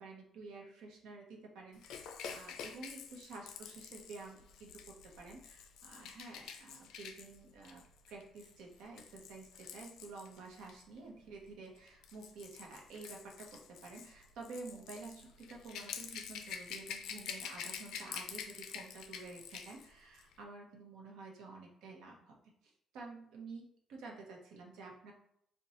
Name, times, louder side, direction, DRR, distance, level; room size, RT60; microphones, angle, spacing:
voice 1, 0.0-4.8 5.2-22.4 22.6-25.1, right 3 dB, 85° right, 0 dB, 0.7 m, -50 dB
Rattle / Rattle (instrument), 1.8-10.8 11.8-19.9 20.2-20.3, left 7 dB, 85° left, 0.3 m, -48 dB
2.8 x 2.2 x 4.0 m, 0.71 s
cardioid pair, 140°, 0 cm